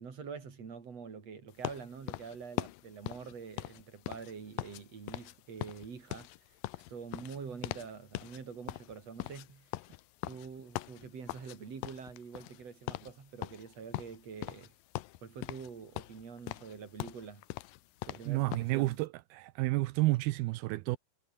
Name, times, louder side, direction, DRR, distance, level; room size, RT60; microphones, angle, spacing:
voice 1, 0.0-6.6 6.9-9.7 10.2-14.7 15.2-17.4 18.1-19.0, right 6 dB, 45° right, 4.6 m, -46 dB
sound 1, 1.6-4.8 5.1-5.4 5.6-8.4 8.7-11.6 11.8-12.6 12.9-13.1 13.4-14.7 15.0-15.7 16.0-18.7, left 17 dB, 75° left, 2.4 m, -41 dB
voice 2, 18.3-21.0, right 20 dB, 85° right, 2.6 m, -30 dB
omnidirectional pair, 4.4 m